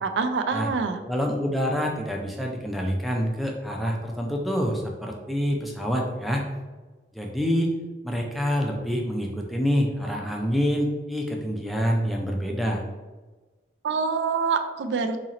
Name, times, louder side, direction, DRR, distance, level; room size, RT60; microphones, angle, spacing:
voice 1, 0.0-1.0 13.8-15.2, right 5 dB, 75° right, 8 dB, 0.3 m, -25 dB
voice 2, 1.1-6.4 7.1-7.7 8.0-12.8, equal, ahead, 0 dB, 0.4 m, -26 dB
2.9 x 2.8 x 3.7 m, 1.3 s
head